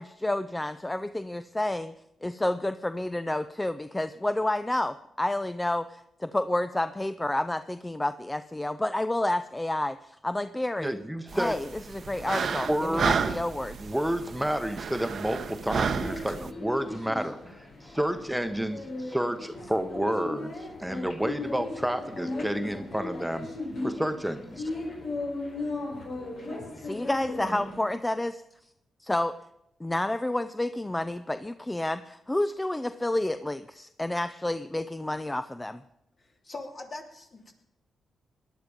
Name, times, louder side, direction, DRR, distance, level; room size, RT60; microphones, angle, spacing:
voice 1, 0.0-1.9 2.2-10.9 11.3-13.8 26.8-28.4 29.0-29.4 29.8-35.8, left 1 dB, 15° left, 11 dB, 0.6 m, -30 dB
voice 2, 10.8-11.6 12.7-13.2 13.8-23.5 23.8-24.7, equal, 5° right, 8 dB, 1.1 m, -30 dB
sound 1, 11.3-16.5, right 6 dB, 65° right, 0.9 m, -32 dB
sound 2, 15.2-27.8, left 2 dB, 65° left, 4.0 m, -37 dB
voice 3, 36.2-37.5, left 2 dB, 50° left, 2 dB, 3.1 m, -42 dB
18.0 x 11.0 x 5.2 m, 0.82 s
supercardioid pair, 60°, 0 cm